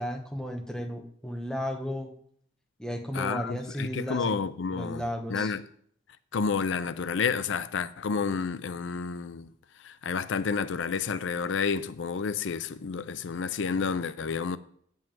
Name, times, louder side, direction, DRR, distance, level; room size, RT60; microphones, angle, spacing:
voice 1, 0.0-2.1 2.8-4.4 4.7-5.5, equal, 5° left, 1.1 m, -34 dB
voice 2, 3.1-5.0 5.3-5.6 6.3-9.5 9.8-14.6, left 5 dB, 80° left, 0.5 m, -30 dB
9.2 x 5.5 x 7.5 m
head